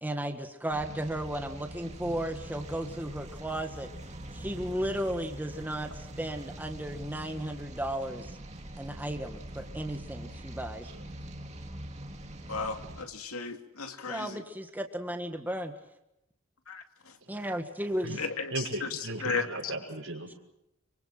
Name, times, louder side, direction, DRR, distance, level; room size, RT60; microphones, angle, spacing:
voice 1, 0.0-3.9 4.3-8.4 8.8-10.9 14.1-15.7 17.3-18.1, right 1 dB, 10° right, 5 dB, 1.7 m, -34 dB
sound 1, 0.7-13.1, right 1 dB, 30° right, 2.5 m, -43 dB
voice 2, 12.5-14.4 16.7-16.8 18.2-18.5 19.2-19.4, left 4 dB, 85° left, 6 dB, 2.6 m, -34 dB
voice 3, 18.5-20.3, right 2 dB, 70° right, 2 dB, 5.9 m, -37 dB
24.5 x 24.5 x 6.0 m, 0.86 s
head